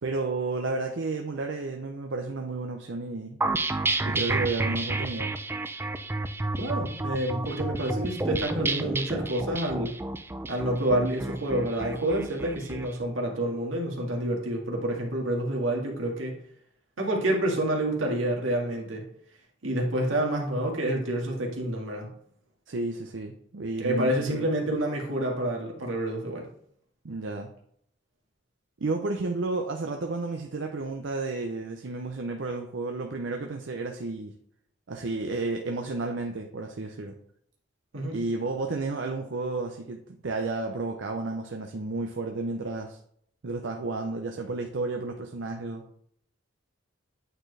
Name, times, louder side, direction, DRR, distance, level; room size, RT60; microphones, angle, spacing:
voice 1, 0.0-3.4 4.0-5.3 22.7-24.5 27.0-27.5 28.8-34.3 34.9-37.2 38.1-43.0 43.4-45.8, right 3 dB, 65° right, 3 dB, 0.6 m, -32 dB
sound 1, 3.4-12.9, right 2 dB, 10° right, 0.3 m, -30 dB
voice 2, 6.5-9.9 10.5-16.3 17.0-19.0 19.6-22.1 23.8-26.5 37.9-38.2, right 1 dB, 80° right, -1 dB, 1.8 m, -28 dB
8.8 x 4.4 x 3.3 m, 0.67 s
head